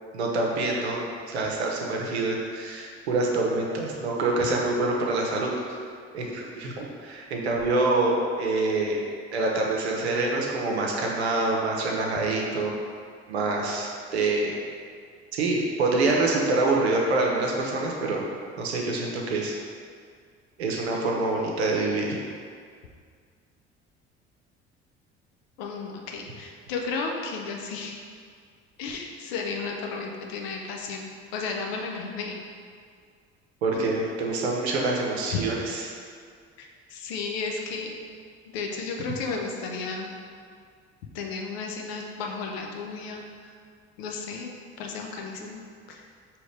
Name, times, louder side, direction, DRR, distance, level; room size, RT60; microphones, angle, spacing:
voice 1, 0.1-1.0 1.3-5.5 6.1-9.0 9.3-12.7 13.3-14.6 15.3-18.2 18.6-19.5 20.6-22.2 33.6-36.0, right 2 dB, 90° right, -1 dB, 0.6 m, -26 dB
voice 2, 25.6-28.0 28.8-32.4 33.7-33.9 35.3-35.4 36.6-37.9 38.5-40.1 41.1-43.5 44.0-44.5 44.8-45.6 45.9-46.0, left 4 dB, 75° left, 1 dB, 0.7 m, -33 dB
4.8 x 3.0 x 3.2 m, 2.1 s
hypercardioid pair, 60°, 32 cm